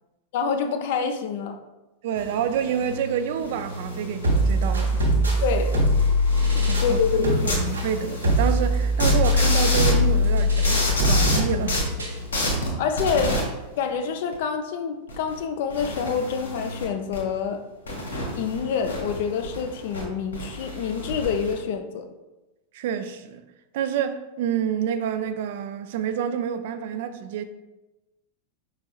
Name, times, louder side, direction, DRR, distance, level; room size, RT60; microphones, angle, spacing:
voice 1, 0.3-1.6 5.4-5.8 6.8-7.6 12.8-13.4 13.8-17.6 18.3-22.1, left 6 dB, 50° left, 0.5 m, -27 dB
voice 2, 2.0-5.0 6.7-11.9 22.7-23.4 23.7-27.4, right 8 dB, 55° right, 0.3 m, -28 dB
sound 1, 2.1-13.4 14.3-14.4 15.1-15.4 15.7-16.8 17.1-17.2 17.9-20.0 20.3-21.5, equal, 75° left, 1.3 m, -31 dB
sound 2, 4.2-12.2, left 1 dB, 75° right, 1.0 m, -22 dB
5.4 x 4.1 x 2.3 m
figure-of-eight pair, 90°, 0 cm